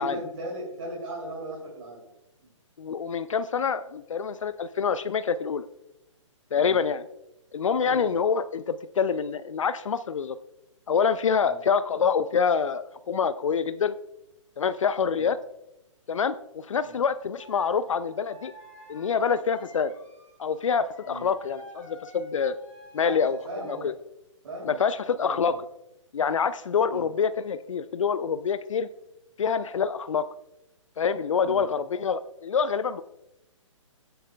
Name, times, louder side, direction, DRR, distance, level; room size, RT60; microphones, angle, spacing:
voice 1, 0.0-2.1 2.4-2.5 6.5-6.8 7.8-8.2 11.4-11.6 15.1-15.3 16.8-17.0 21.1-21.3 23.0-23.9 24.4-24.8 25.2-25.6 26.9-27.1 31.4-31.7, right 1 dB, 55° right, -4 dB, 2.7 m, -38 dB
voice 2, 2.8-5.7 6.5-7.0 7.5-10.4 10.9-13.9 14.6-15.4 16.1-18.5 18.9-19.9 20.4-22.5 22.9-23.4 23.7-23.9 24.7-25.6 26.1-28.9 29.4-30.2 31.0-33.0, left 6 dB, 75° left, 13 dB, 0.4 m, -26 dB
sound 1, 17.4-23.8, equal, 5° left, 3.9 m, -51 dB
16.0 x 7.8 x 2.3 m, 0.88 s
figure-of-eight pair, 135°, 17 cm